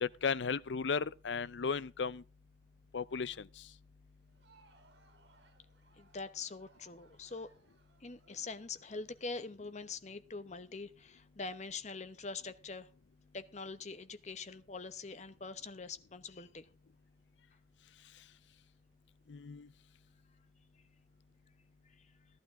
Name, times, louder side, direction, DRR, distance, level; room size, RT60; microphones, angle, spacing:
voice 1, 0.0-2.2 2.9-3.6 19.3-19.7, left 5 dB, 80° left, 0.5 m, -35 dB
Crowd, 4.1-10.0, right 3 dB, 80° right, 3.6 m, -68 dB
voice 2, 6.0-7.5 8.0-12.9 13.3-16.7, left 4 dB, 40° left, 0.9 m, -44 dB
15.5 x 12.0 x 3.7 m
head